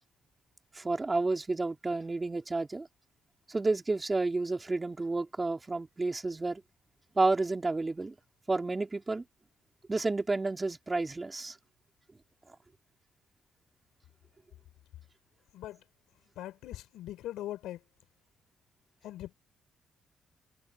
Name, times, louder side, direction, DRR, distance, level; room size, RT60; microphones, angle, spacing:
voice 1, 0.7-2.9 3.5-6.6 7.1-8.2 8.5-9.2 9.9-11.6, right 3 dB, 20° right, 4.2 m, -30 dB
voice 2, 16.4-17.8 19.0-19.3, left 13 dB, 85° left, 5.7 m, -41 dB
cardioid pair, 90°, 0 cm